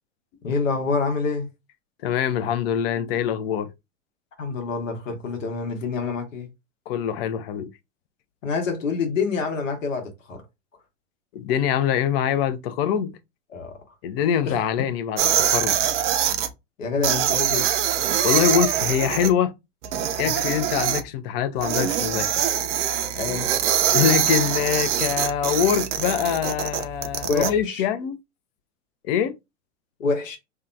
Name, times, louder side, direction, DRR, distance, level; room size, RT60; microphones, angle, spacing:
voice 1, 0.4-1.5 4.4-6.5 8.4-10.4 13.5-13.7 14.4-14.6 16.8-17.7 20.2-20.4 23.1-23.5 27.3-27.8 30.0-30.4, left 4 dB, 80° left, 1.1 m, -26 dB
voice 2, 2.0-3.7 6.9-7.7 11.3-13.2 14.0-15.8 18.2-19.5 20.2-22.4 23.9-28.2 29.0-29.4, left 9 dB, 50° left, 0.5 m, -24 dB
sound 1, 15.2-16.5 17.0-19.3 19.8-21.0 21.6-27.5, right 10 dB, 70° right, 0.6 m, -23 dB
2.8 x 2.2 x 2.5 m
hypercardioid pair, 100°, 38 cm